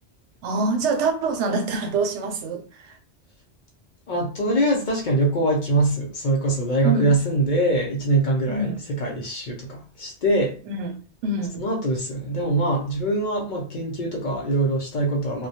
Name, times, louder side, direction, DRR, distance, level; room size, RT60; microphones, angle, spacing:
voice 1, 0.4-2.9 6.8-7.1 8.5-8.8 10.7-10.9 11.2-11.7, right 3 dB, 85° right, 0.9 m, -25 dB
voice 2, 4.1-10.6 11.6-15.5, right 2 dB, 55° left, 0.6 m, -23 dB
2.2 x 2.1 x 2.7 m
omnidirectional pair, 1.2 m